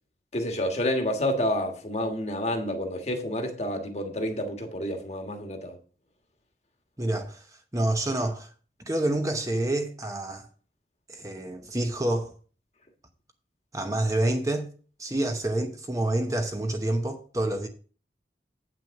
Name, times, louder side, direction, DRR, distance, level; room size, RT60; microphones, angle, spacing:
voice 1, 0.3-5.8, left 1 dB, 40° left, 1.5 m, -29 dB
voice 2, 7.0-7.4 7.7-8.5 8.9-10.5 11.1-12.3 13.7-14.7 15.0-17.7, right 1 dB, 20° right, 0.9 m, -28 dB
8.9 x 6.1 x 5.2 m
head